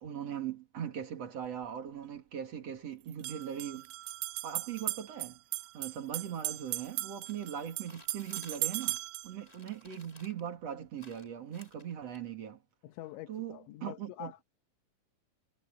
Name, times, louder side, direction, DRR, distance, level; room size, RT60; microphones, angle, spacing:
voice 1, 0.0-3.9 4.4-5.4 5.7-9.0 9.2-12.6 13.3-14.3, right 9 dB, 45° right, 2.6 m, -40 dB
sound 1, 1.5-1.6 3.1-9.3, right 19 dB, 85° right, 3.2 m, -38 dB
sound 2, 7.2-9.2 9.4-10.5 11.0-12.2, left 2 dB, 40° left, 0.5 m, -56 dB
voice 2, 12.8-14.4, left 15 dB, 80° left, 3.5 m, -46 dB
omnidirectional pair, 5.5 m